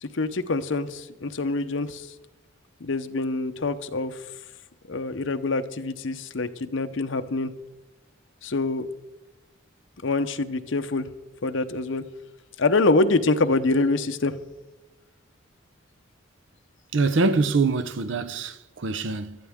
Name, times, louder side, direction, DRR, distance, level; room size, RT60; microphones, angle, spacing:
voice 1, 0.0-2.1 2.8-4.2 4.9-7.5 8.4-8.9 10.0-11.1 11.4-12.0 12.6-14.3, left 3 dB, 70° left, 0.8 m, -25 dB
voice 2, 16.9-19.4, right 3 dB, 65° right, 0.6 m, -24 dB
18.0 x 12.5 x 3.6 m
head